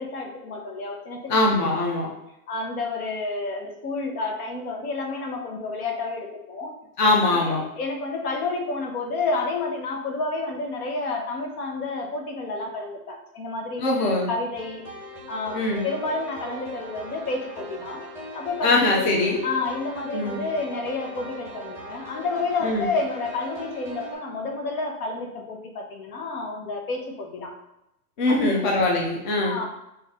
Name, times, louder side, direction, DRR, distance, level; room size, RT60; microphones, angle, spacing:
voice 1, 0.0-1.3 1.9-2.1 2.5-6.7 7.2-14.8 15.3-18.0 18.3-19.1 19.4-27.5 28.3-28.6 29.4-29.7, left 3 dB, 65° left, 2 dB, 0.8 m, -30 dB
voice 2, 1.3-2.1 7.0-7.6 13.8-14.3 15.5-15.9 18.6-19.4 20.1-20.4 22.6-22.9 28.2-29.6, left 2 dB, 35° left, -1 dB, 0.4 m, -22 dB
sound 1, 14.6-24.2, right 1 dB, 5° right, 0.6 m, -40 dB
2.5 x 2.5 x 3.9 m, 0.85 s
hypercardioid pair, 130°, 48 cm